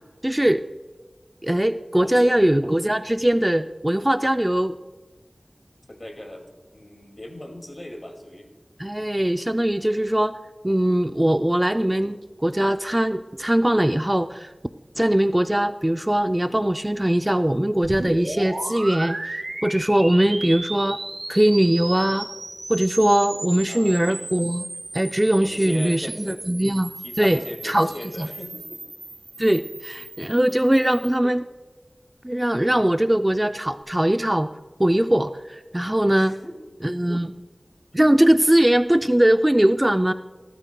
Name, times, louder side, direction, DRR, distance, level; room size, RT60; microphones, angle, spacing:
voice 1, 0.2-0.6 1.4-4.8 8.8-10.4 10.6-14.5 15.0-21.0 21.3-22.3 22.7-24.7 24.9-27.9 28.2-28.3 29.4-31.4 32.2-34.5 34.8-36.4 36.8-37.3 37.9-40.1, right 1 dB, 20° right, 9 dB, 0.4 m, -21 dB
voice 2, 2.0-2.4 5.9-6.5 6.7-8.5 23.7-24.2 25.4-26.4 27.0-28.8 36.1-36.7 37.2-37.3, left 1 dB, 45° left, 3 dB, 2.3 m, -39 dB
sound 1, 17.8-31.2, right 2 dB, 80° right, 2.5 m, -35 dB
17.5 x 12.5 x 2.3 m, 1.3 s
wide cardioid pair, 45°, 0 cm